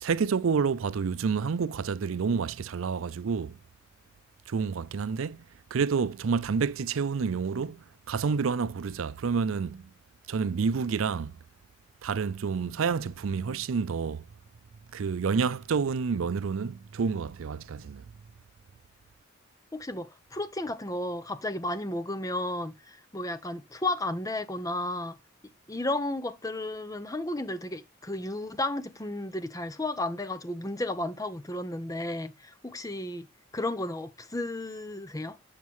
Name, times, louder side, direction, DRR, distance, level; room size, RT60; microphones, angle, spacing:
voice 1, 0.0-3.6 4.5-5.4 5.7-9.8 10.3-11.4 12.0-14.2 14.9-18.0, right 5 dB, 80° right, 0.5 m, -29 dB
voice 2, 19.7-25.2 25.7-33.3 33.5-35.4, left 1 dB, 15° left, 0.7 m, -33 dB
7.4 x 7.2 x 3.0 m
head